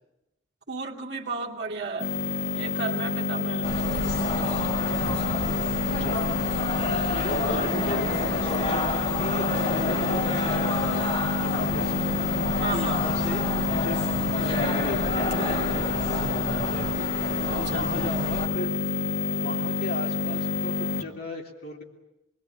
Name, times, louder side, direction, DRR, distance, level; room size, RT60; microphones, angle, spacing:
voice 1, 0.7-2.1 2.5-3.8 7.4-7.7 12.5-13.1 17.5-18.3, right 3 dB, 55° right, -2 dB, 2.6 m, -34 dB
sound 1, 2.0-21.0, left 4 dB, 65° left, 1.9 m, -28 dB
sound 2, 3.6-18.5, left 1 dB, 30° left, 3.0 m, -30 dB
voice 2, 6.0-6.8 7.1-12.0 12.6-16.9 17.5-18.8 19.4-21.8, left 2 dB, 50° left, 0 dB, 3.3 m, -37 dB
26.0 x 21.0 x 8.6 m, 0.91 s
head